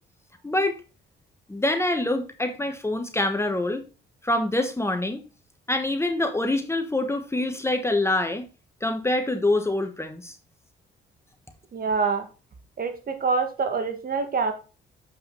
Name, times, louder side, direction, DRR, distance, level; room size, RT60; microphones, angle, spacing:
voice 1, 0.4-0.8 1.5-3.8 4.2-5.2 5.7-8.5 8.8-10.3, left 2 dB, 15° left, 6 dB, 1.2 m, -25 dB
voice 2, 11.7-12.3 12.8-14.5, right 4 dB, 50° right, 7 dB, 1.8 m, -25 dB
7.3 x 5.7 x 3.9 m, 0.32 s
cardioid pair, 90°, 20 cm